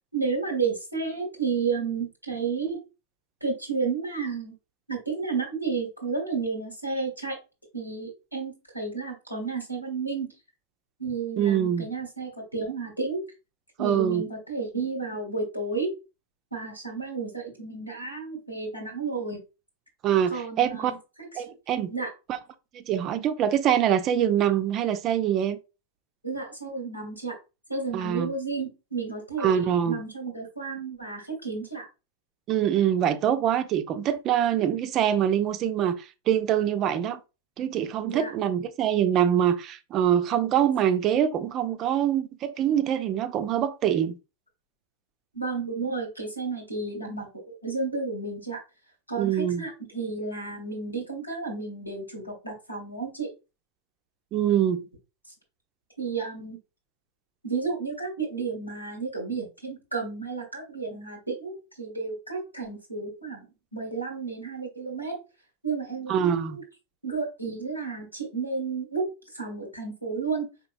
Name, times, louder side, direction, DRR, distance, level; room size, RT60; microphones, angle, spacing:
voice 1, 0.1-2.8 3.4-4.5 4.9-7.4 7.7-10.3 11.0-13.2 13.8-15.9 16.5-19.4 20.3-21.0 21.3-21.4 21.9-22.1 26.2-27.3 27.7-31.9 38.0-38.3 45.3-48.6 49.1-53.3 56.0-56.6 57.4-65.1 65.6-66.6 67.0-69.1 69.3-70.5, right 4 dB, 90° left, 1.6 m, -32 dB
voice 2, 11.4-11.9 13.8-14.2 20.0-20.9 21.4-21.9 22.3-22.4 22.7-25.6 27.9-28.3 29.4-30.0 32.5-37.2 37.6-44.2 49.2-49.6 54.3-54.8 66.1-66.6, right 9 dB, 35° right, 0.5 m, -24 dB
5.0 x 2.9 x 2.6 m
figure-of-eight pair, 90°, 0 cm